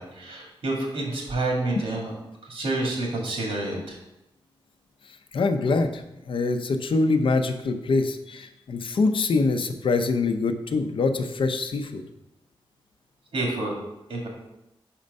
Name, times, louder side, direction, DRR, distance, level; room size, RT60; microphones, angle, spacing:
voice 1, 0.0-2.1 2.4-4.0 13.3-13.8 14.1-14.3, right 2 dB, 85° right, -1 dB, 1.9 m, -28 dB
voice 2, 5.3-12.0, left 3 dB, 65° left, 7 dB, 0.6 m, -24 dB
5.2 x 4.4 x 5.3 m, 0.90 s
wide cardioid pair, 105°, 9 cm